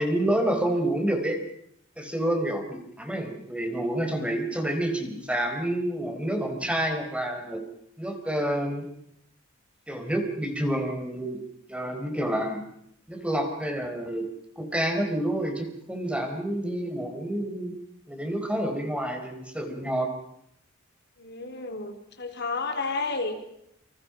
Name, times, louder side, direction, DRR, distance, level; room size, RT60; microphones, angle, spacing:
voice 1, 0.0-1.4 2.0-7.6 8.0-8.9 9.9-11.4 11.7-12.6 13.1-14.3 14.6-17.7 18.1-20.1, right 1 dB, 5° right, 4 dB, 4.3 m, -28 dB
voice 2, 21.2-23.4, left 3 dB, 55° left, 5 dB, 3.5 m, -31 dB
29.0 x 27.0 x 5.1 m, 0.75 s
head